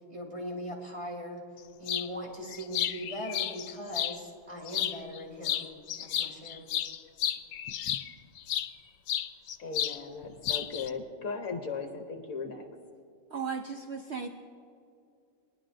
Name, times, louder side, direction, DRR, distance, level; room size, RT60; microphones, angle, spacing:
voice 1, 0.1-1.4 1.8-5.7 6.0-6.7, equal, 20° right, -3 dB, 2.5 m, -39 dB
sound 1, 1.9-2.1 2.5-4.2 4.7-5.2 5.4-8.7 9.1-10.0 10.2-10.9, left 10 dB, 80° left, 1.2 m, -32 dB
voice 2, 9.6-12.7, left 4 dB, 60° left, 5 dB, 1.1 m, -37 dB
voice 3, 13.3-14.3, right 6 dB, 65° right, 4 dB, 0.6 m, -35 dB
20.5 x 11.0 x 2.6 m, 2.4 s
omnidirectional pair, 1.8 m